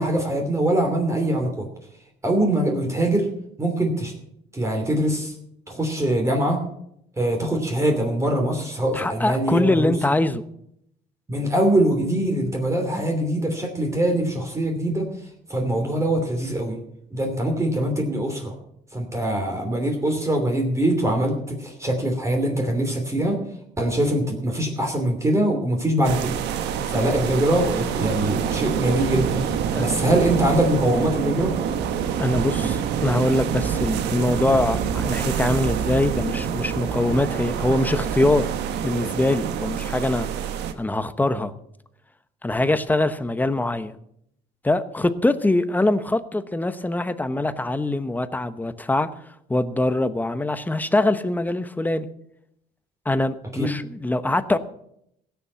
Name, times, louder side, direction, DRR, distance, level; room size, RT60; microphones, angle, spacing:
voice 1, 0.0-1.7 2.2-3.3 3.6-4.1 4.5-5.3 5.7-6.6 7.2-9.9 11.3-15.1 15.5-16.8 17.1-18.5 18.9-23.4 23.8-26.4 26.9-29.4 29.8-31.5 53.5-53.7, right 1 dB, 15° right, 2 dB, 2.8 m, -23 dB
voice 2, 8.9-10.4 12.9-13.1 29.7-30.1 32.2-38.5 38.8-40.3 40.8-41.5 42.4-44.0 44.6-49.1 49.5-52.1 53.0-54.6, left 2 dB, 10° left, 13 dB, 0.9 m, -23 dB
sound 1, 26.0-40.7, right 8 dB, 90° right, 1.2 m, -26 dB
16.5 x 7.1 x 7.3 m, 0.75 s
cardioid pair, 110°, 17 cm